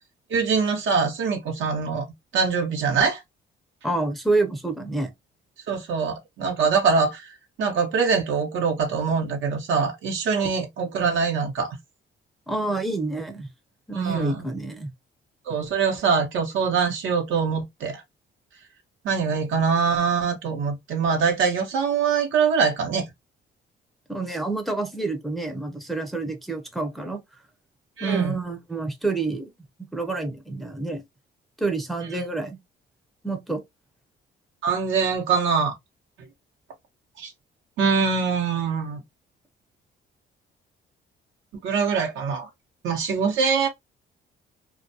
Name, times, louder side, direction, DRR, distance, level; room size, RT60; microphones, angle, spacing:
voice 1, 0.3-2.1 2.3-3.2 5.7-11.8 13.9-14.4 15.5-18.0 19.0-23.1 28.0-28.4 34.6-35.7 37.2-37.3 37.8-39.0 41.6-42.5 42.8-43.7, right 5 dB, 75° right, 0.9 m, -23 dB
voice 2, 3.8-5.1 10.4-10.5 12.5-13.5 13.9-14.9 24.1-27.2 28.0-29.5 29.9-31.0 31.6-32.6 33.2-33.6, right 3 dB, ahead, 0.5 m, -28 dB
2.3 x 2.2 x 2.6 m
cardioid pair, 90°, 20 cm